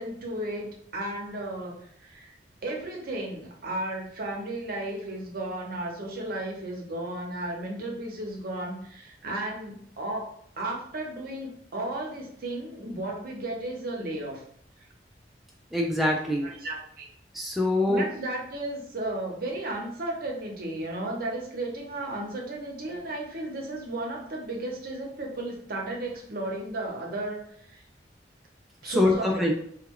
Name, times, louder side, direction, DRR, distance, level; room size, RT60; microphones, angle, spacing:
voice 1, 0.0-2.4 2.6-10.3 10.6-14.4 16.4-17.1 17.9-27.8 28.8-29.5, right 1 dB, 60° right, 0 dB, 0.7 m, -34 dB
voice 2, 15.7-16.5 17.3-18.1 28.8-29.5, left 1 dB, ahead, -2 dB, 0.3 m, -24 dB
2.2 x 2.2 x 3.5 m, 0.66 s
head